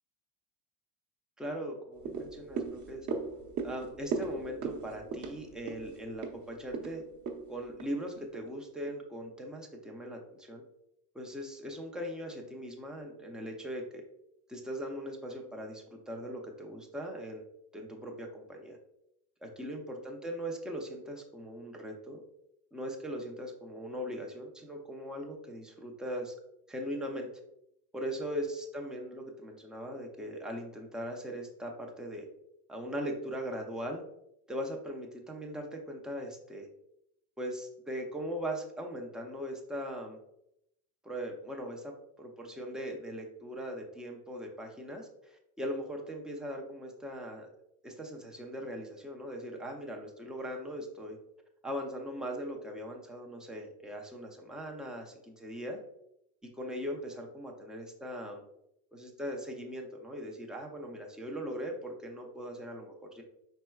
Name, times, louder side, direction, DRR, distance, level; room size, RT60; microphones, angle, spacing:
voice 1, 1.4-3.1 3.6-7.0 7.5-10.6 11.1-14.0 14.5-17.4 17.7-18.8 19.4-22.2 22.7-26.3 26.7-27.3 27.9-32.3 32.7-34.0 34.5-36.7 37.4-40.2 41.0-47.5 47.8-51.2 51.6-55.8 56.6-58.4 58.9-63.2, equal, ahead, 0 dB, 0.3 m, -40 dB
sound 1, 2.0-8.5 8.9-9.0, right 5 dB, 40° right, 0.8 m, -39 dB
5.3 x 4.4 x 2.2 m, 0.79 s
supercardioid pair, 130°, 46 cm